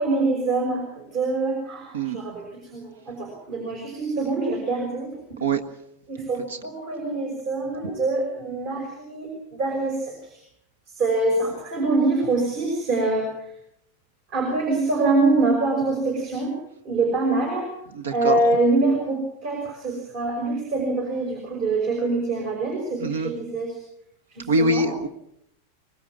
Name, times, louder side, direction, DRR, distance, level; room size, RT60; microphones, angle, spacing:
voice 1, 0.0-5.2 6.1-10.4 10.9-13.5 14.3-16.5 16.8-17.7 18.1-23.8 24.3-24.9, right 3 dB, 45° right, 2 dB, 5.9 m, -25 dB
voice 2, 18.0-18.4 23.0-23.3 24.5-25.1, right 2 dB, 65° right, 9 dB, 1.6 m, -23 dB
24.5 x 20.5 x 6.2 m, 0.76 s
figure-of-eight pair, 90°, 0 cm